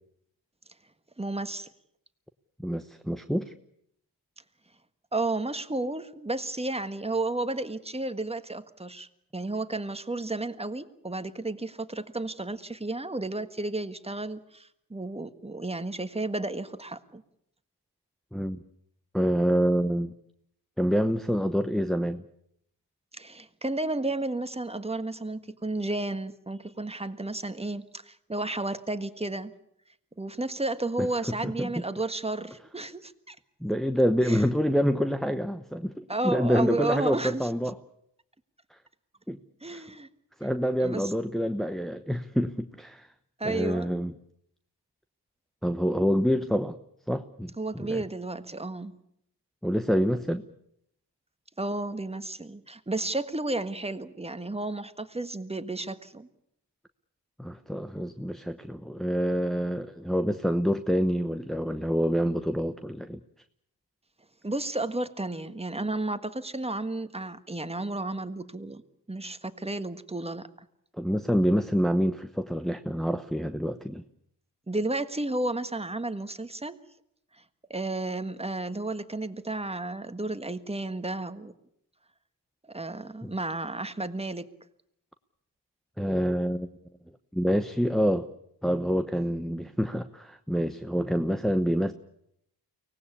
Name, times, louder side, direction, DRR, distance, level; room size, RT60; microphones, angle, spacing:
voice 1, 1.2-1.7 5.1-17.2 23.1-29.5 30.2-33.4 34.2-34.4 36.1-37.5 39.6-40.1 40.8-41.1 43.4-43.9 47.6-49.0 51.6-56.3 64.4-68.8 69.1-70.5 74.7-76.8 77.3-77.4 77.7-81.5 82.7-84.5, right 2 dB, 15° right, 10 dB, 1.5 m, -32 dB
voice 2, 2.6-3.5 18.3-18.6 19.1-20.1 20.8-22.2 31.0-31.1 31.4-31.8 33.6-37.8 39.3-39.4 39.7-39.8 40.4-43.1 43.4-44.1 45.6-46.8 47.1-48.0 49.6-50.4 57.4-63.2 71.0-74.0 83.2-83.3 86.0-86.7 87.3-88.3 88.6-91.9, equal, ahead, 8 dB, 0.9 m, -27 dB
24.0 x 18.5 x 8.5 m, 0.74 s
cardioid pair, 65°, 42 cm